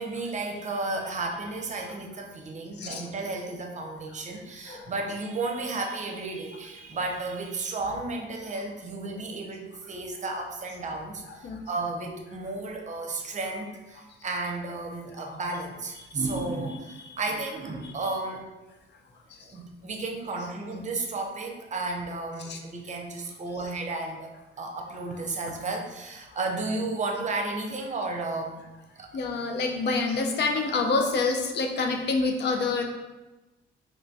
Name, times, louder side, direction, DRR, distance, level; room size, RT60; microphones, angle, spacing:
voice 1, 0.0-18.5 19.4-24.3 24.6-28.7 29.0-29.1, right 3 dB, 35° right, 2 dB, 0.6 m, -33 dB
voice 2, 2.8-3.1 4.7-4.9 11.3-11.6 15.2-15.4 22.4-22.6 29.1-32.8, left 3 dB, 60° left, 4 dB, 0.6 m, -27 dB
3.1 x 2.2 x 4.0 m, 1.1 s
cardioid pair, 90°, 20 cm